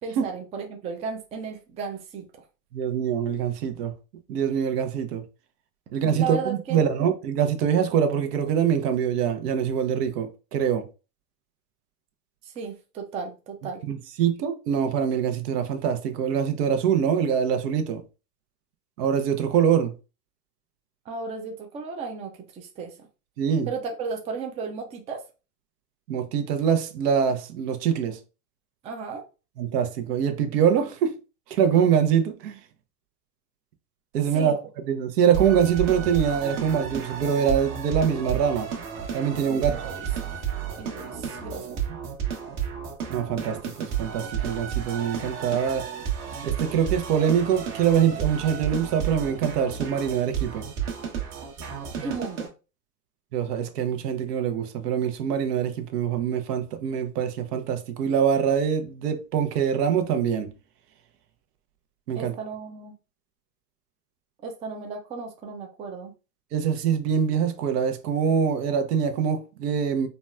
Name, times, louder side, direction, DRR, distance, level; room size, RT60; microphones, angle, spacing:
voice 1, 0.0-2.2 6.1-6.9 12.4-13.8 21.1-23.1 23.7-25.2 28.8-29.2 34.3-34.6 39.5-40.1 40.7-41.8 52.0-52.5 62.1-62.9 64.4-66.1, right 5 dB, 15° right, 0.4 m, -34 dB
voice 2, 2.7-3.9 4.3-5.2 5.9-10.8 13.9-18.0 19.0-19.9 23.4-23.7 26.1-28.2 29.6-31.1 31.5-32.6 34.1-38.7 39.1-39.8 43.1-45.8 46.4-50.7 53.3-60.5 62.1-62.3 66.5-70.1, right 8 dB, 70° right, 0.8 m, -24 dB
sound 1, 35.3-52.5, right 8 dB, 50° right, 1.2 m, -32 dB
3.9 x 2.2 x 2.3 m
hypercardioid pair, 100°, 49 cm